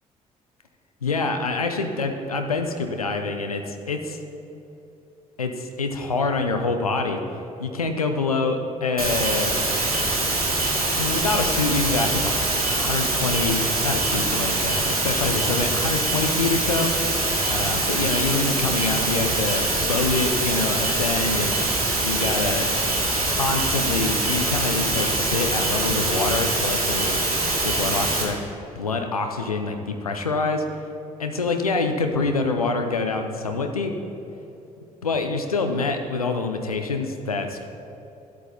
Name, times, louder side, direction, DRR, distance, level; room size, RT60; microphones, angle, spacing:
voice 1, 1.0-4.2 5.4-7.2 7.6-9.5 11.0-12.4 12.7-16.9 17.5-21.5 22.0-22.7 23.3-27.2 27.6-28.4 28.8-30.6 31.2-33.9 35.0-37.6, left 3 dB, 90° left, 5 dB, 0.6 m, -26 dB
sound 1, 9.0-28.2, right 2 dB, 90° right, 1.4 m, -24 dB
12.5 x 8.4 x 4.0 m, 2.9 s
figure-of-eight pair, 50°, 18 cm